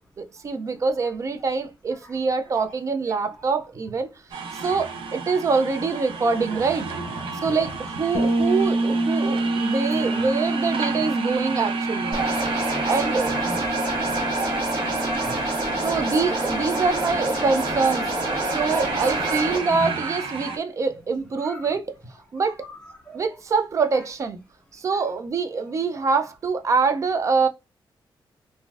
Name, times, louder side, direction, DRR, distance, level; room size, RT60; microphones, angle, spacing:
voice 1, 0.2-4.1 4.5-6.9 7.4-12.2 12.9-13.4 15.8-21.9 22.3-22.6 23.1-24.4 24.7-27.5, right 4 dB, 35° right, 0.3 m, -25 dB
voice 2, 0.7-1.1 1.9-2.2 2.4-2.7 3.0-3.7 6.3-6.4 7.0-7.7 9.9-10.3 10.8-10.9 12.8-13.5 13.8-14.2 14.7-15.6 16.0-16.6 21.4-21.7 22.1-23.4 23.9-24.1 24.9-25.1 25.6-26.2, right 1 dB, 5° left, 1.7 m, -44 dB
sound 1, 4.3-20.6, right 4 dB, 80° right, 0.6 m, -32 dB
Bass guitar, 8.1-17.8, right 2 dB, 50° left, 0.5 m, -28 dB
sound 2, 12.1-19.6, right 1 dB, 55° right, 1.4 m, -27 dB
3.9 x 2.5 x 2.3 m
wide cardioid pair, 175°, 9 cm